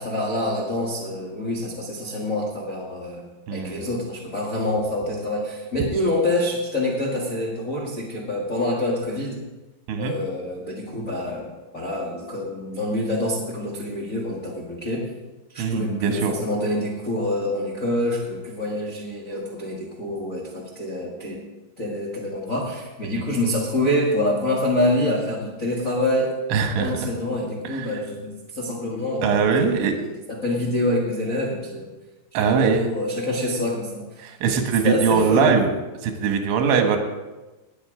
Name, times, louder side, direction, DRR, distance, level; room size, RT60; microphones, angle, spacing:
voice 1, 0.0-3.2 3.5-9.4 10.0-15.1 15.5-21.4 21.8-26.3 26.8-31.9 32.4-34.2 34.8-35.6, left 1 dB, 50° left, -2 dB, 0.9 m, -26 dB
voice 2, 3.5-3.8 9.9-10.1 15.6-16.3 23.0-23.2 26.5-26.9 27.7-27.9 29.2-29.9 32.4-32.9 34.2-35.7 36.0-37.0, right 6 dB, 90° right, 5 dB, 3.8 m, -21 dB
19.5 x 8.1 x 5.0 m, 1.1 s
omnidirectional pair, 5.2 m